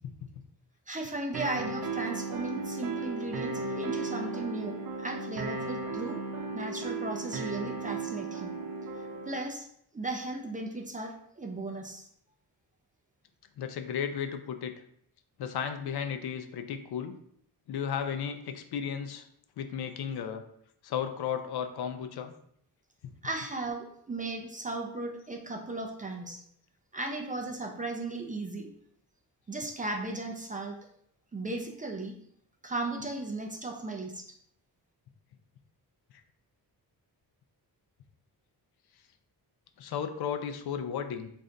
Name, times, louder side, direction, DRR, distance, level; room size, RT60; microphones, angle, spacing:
voice 1, 0.9-6.2 6.5-8.6 9.2-9.7 9.9-12.1 23.2-26.4 26.9-28.7 29.5-30.9 31.3-32.2 32.6-34.3, right 2 dB, 20° right, 2 dB, 0.3 m, -36 dB
sound 1, 1.3-9.3, right 3 dB, 65° right, 0.7 m, -35 dB
voice 2, 13.6-14.7 15.4-17.1 17.7-19.2 19.6-20.4 20.8-22.3 39.8-41.3, left 8 dB, 75° left, 7 dB, 0.5 m, -34 dB
3.2 x 2.5 x 3.8 m, 0.69 s
wide cardioid pair, 130°, 39 cm